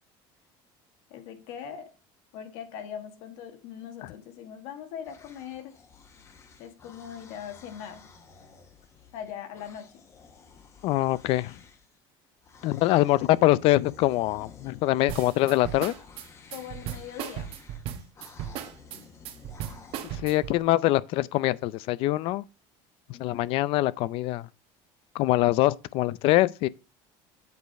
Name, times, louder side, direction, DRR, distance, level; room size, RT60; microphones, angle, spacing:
voice 1, 1.1-1.9 2.3-5.8 6.6-8.1 9.1-10.0 16.5-17.5 23.1-23.5, left 9 dB, 75° left, 1.9 m, -41 dB
sound 1, 5.0-12.0 12.4-20.1, left 5 dB, 25° left, 1.2 m, -52 dB
voice 2, 10.8-11.5 12.6-15.9 20.1-22.4 23.2-24.5 25.1-26.7, left 16 dB, 55° left, 0.5 m, -24 dB
sound 2, 15.1-20.6, right 10 dB, 55° right, 1.2 m, -36 dB
8.0 x 5.1 x 4.7 m
cardioid pair, 155°, 11 cm